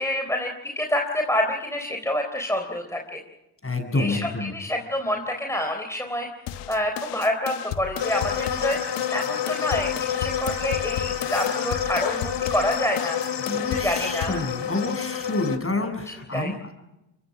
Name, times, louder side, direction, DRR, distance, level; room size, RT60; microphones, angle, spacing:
voice 1, 0.0-3.2 3.9-6.3 6.7-8.8 9.1-9.9 10.2-13.2 13.7-14.4 16.3-16.5, left 1 dB, 5° left, 3 dB, 3.8 m, -27 dB
voice 2, 3.6-4.5 13.4-16.7, left 2 dB, 25° left, 7 dB, 7.2 m, -28 dB
sound 1, 6.5-14.5, left 11 dB, 85° left, 1.3 m, -34 dB
sound 2, 8.0-15.6, left 9 dB, 55° left, 2.5 m, -29 dB
24.0 x 23.0 x 6.2 m, 0.93 s
supercardioid pair, 55°, 50 cm